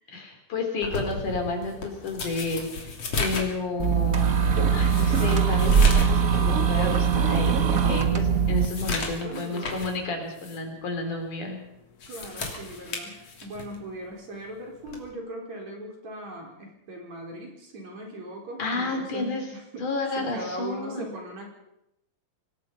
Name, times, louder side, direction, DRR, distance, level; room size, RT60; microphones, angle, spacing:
voice 1, 0.1-2.9 3.2-4.3 4.7-11.6 18.6-19.4 19.8-21.1, left 3 dB, 60° left, 3 dB, 5.2 m, -31 dB
sound 1, 0.8-6.2 6.6-6.7 7.2-7.3 7.8-10.0 10.4-10.6 11.8-13.8 14.9-15.1, left 3 dB, 45° left, 3.8 m, -34 dB
sound 2, 3.8-8.7, right 6 dB, 70° right, 0.8 m, -21 dB
voice 2, 9.2-9.8 12.1-19.9 20.2-21.5, right 1 dB, 50° right, 0 dB, 5.6 m, -39 dB
25.5 x 19.0 x 5.6 m, 0.83 s
omnidirectional pair, 4.0 m